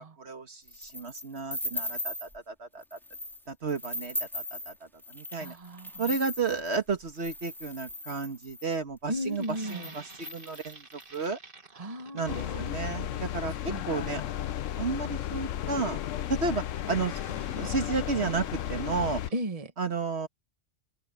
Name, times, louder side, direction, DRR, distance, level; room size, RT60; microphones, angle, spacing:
voice 1, 0.0-3.0 3.5-4.7 5.1-5.6 6.0-10.8 11.1-11.4 12.1-14.2 14.8-16.0 16.3-17.2 17.6-19.2 19.8-20.3, right 4 dB, 60° right, 1.9 m, -32 dB
sound 1, 0.7-2.4 2.8-3.4 3.7-8.7 9.3-9.4 9.6-11.2, left 1 dB, ahead, 2.6 m, -38 dB
voice 2, 5.4-6.1 9.1-9.9 11.7-12.7 13.7-13.8 19.3-19.7, equal, 30° right, 1.6 m, -35 dB
sound 2, 9.3-19.4, right 4 dB, 45° right, 2.0 m, -50 dB
sound 3, 12.3-19.3, left 11 dB, 90° left, 1.0 m, -34 dB
omnidirectional pair, 1.3 m